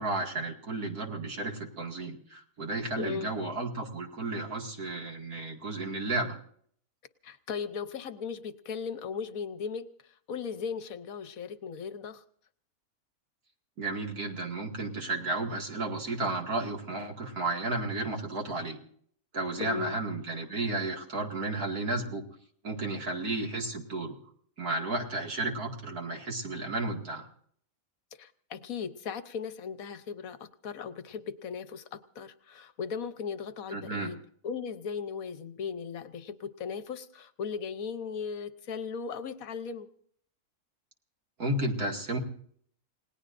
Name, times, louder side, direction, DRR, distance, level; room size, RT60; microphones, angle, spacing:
voice 1, 0.0-6.4 13.8-18.8 19.3-22.2 22.6-24.2 24.6-27.2 33.7-34.1 41.4-42.2, right 2 dB, 75° right, 2 dB, 2.7 m, -33 dB
voice 2, 3.0-3.3 7.2-12.2 19.6-20.0 28.2-39.9, left 6 dB, 70° left, 12 dB, 1.3 m, -37 dB
29.5 x 18.5 x 2.6 m, 0.62 s
omnidirectional pair, 1.6 m